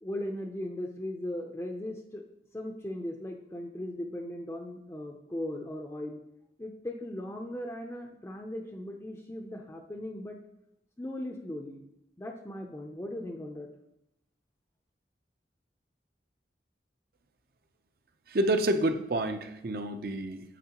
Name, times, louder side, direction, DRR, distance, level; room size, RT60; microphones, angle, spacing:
voice 1, 0.0-2.2 2.5-6.2 6.6-10.4 11.0-11.8 12.2-13.7, left 1 dB, 15° left, 2 dB, 0.5 m, -38 dB
voice 2, 18.3-20.6, right 1 dB, 55° right, 8 dB, 0.6 m, -29 dB
9.2 x 7.0 x 2.9 m, 0.83 s
head